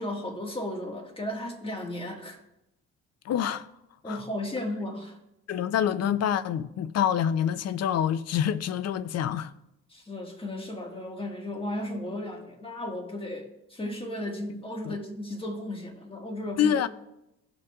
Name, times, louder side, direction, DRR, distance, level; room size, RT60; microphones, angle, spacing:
voice 1, 0.0-2.4 4.0-5.2 9.9-16.9, left 1 dB, 20° left, 1.6 m, -35 dB
voice 2, 3.3-3.7 4.1-4.2 5.5-9.5 14.9-15.0 16.6-16.9, left 9 dB, 55° left, 0.5 m, -26 dB
15.5 x 5.9 x 2.4 m
cardioid pair, 90°, 30 cm